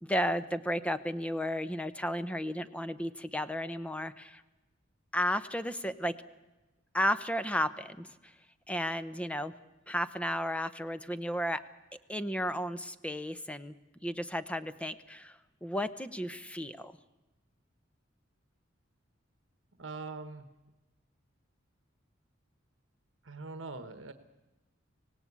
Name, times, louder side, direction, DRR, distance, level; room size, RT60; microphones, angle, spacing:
voice 1, 0.0-4.4 5.1-6.1 6.9-8.3 8.7-9.5 9.9-11.6 12.1-13.7 14.0-16.9, equal, 5° left, 12 dB, 0.8 m, -33 dB
voice 2, 19.8-20.5 23.2-24.1, right 3 dB, 70° right, 9 dB, 1.2 m, -42 dB
25.0 x 18.0 x 8.5 m, 1.1 s
head